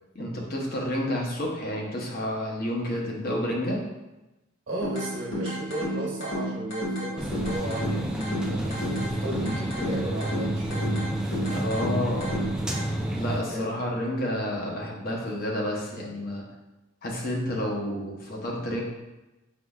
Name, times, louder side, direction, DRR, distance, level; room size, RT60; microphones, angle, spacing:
voice 1, 0.2-3.8 11.5-12.4 13.1-16.4 17.0-18.8, left 1 dB, 45° left, -1 dB, 0.8 m, -30 dB
voice 2, 4.7-10.8 13.5-13.9, right 1 dB, 65° right, -3 dB, 1.2 m, -35 dB
sound 1, 4.8-12.8, equal, 70° left, 1.5 m, -32 dB
sound 2, 7.2-13.4, right 1 dB, 5° right, 0.3 m, -30 dB
5.0 x 3.7 x 2.3 m, 1.0 s
head